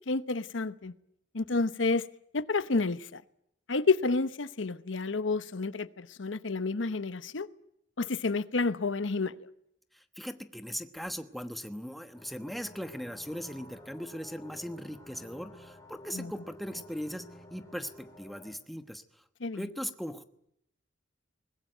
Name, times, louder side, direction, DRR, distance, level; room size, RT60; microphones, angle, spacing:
voice 1, 0.1-0.9 1.3-2.1 2.3-3.2 3.7-7.5 8.0-9.4 16.1-16.3 19.4-19.6, left 3 dB, 85° left, 0.9 m, -30 dB
voice 2, 9.9-17.2 17.5-19.0 19.5-20.2, equal, ahead, 1.1 m, -39 dB
sound 1, 12.1-18.5, left 1 dB, 20° left, 4.1 m, -52 dB
22.0 x 20.5 x 9.2 m
head